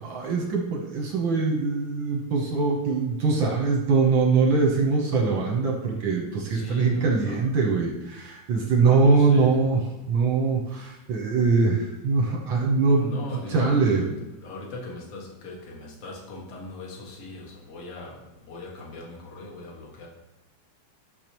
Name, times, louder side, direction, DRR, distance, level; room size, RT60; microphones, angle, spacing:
voice 1, 0.0-9.8 10.1-13.2 13.5-14.0, right 4 dB, 65° right, 0 dB, 1.3 m, -22 dB
voice 2, 6.5-7.6 9.0-9.6 12.9-20.1, left 2 dB, 55° left, -2 dB, 2.5 m, -40 dB
12.0 x 6.6 x 3.0 m, 0.97 s
omnidirectional pair, 3.5 m